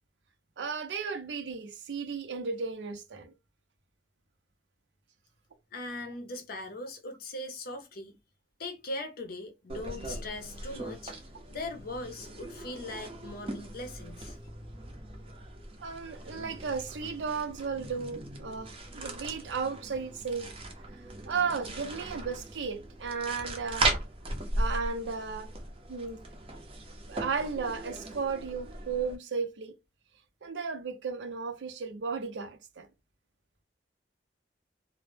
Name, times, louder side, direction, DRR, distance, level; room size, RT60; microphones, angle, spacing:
voice 1, 0.6-3.3 15.8-20.5 21.2-23.9 24.6-25.5 25.9-26.2 27.1-29.7 30.4-32.9, right 5 dB, 85° right, 0.5 m, -34 dB
voice 2, 5.7-8.2 8.6-11.1 11.5-14.4, left 2 dB, 55° left, 0.5 m, -40 dB
sound 1, 9.7-29.2, right 2 dB, 35° right, 0.5 m, -38 dB
2.0 x 2.0 x 3.1 m
head